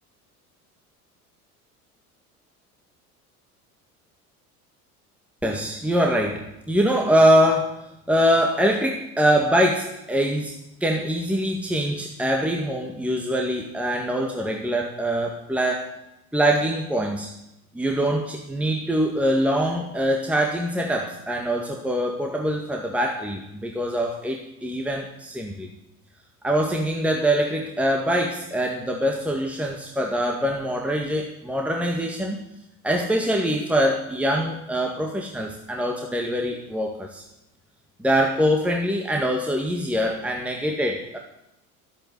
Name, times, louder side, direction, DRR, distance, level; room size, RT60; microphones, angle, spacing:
voice 1, 5.4-7.8 8.1-10.5 10.8-15.9 16.3-17.3 17.7-25.7 26.4-32.4 32.8-37.2 38.0-41.2, equal, 5° right, 1 dB, 1.8 m, -23 dB
12.0 x 8.9 x 8.2 m, 0.86 s
figure-of-eight pair, 70°, 44 cm